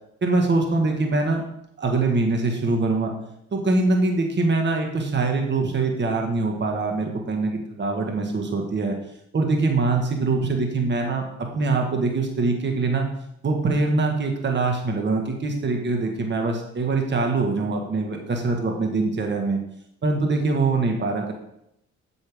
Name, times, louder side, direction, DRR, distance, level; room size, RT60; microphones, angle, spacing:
voice 1, 0.2-1.4 1.8-3.1 3.5-8.9 9.3-13.1 13.4-19.6 20.0-21.3, right 3 dB, 35° right, 2 dB, 1.6 m, -23 dB
8.3 x 8.0 x 3.6 m, 0.77 s
cardioid pair, 90°, 30 cm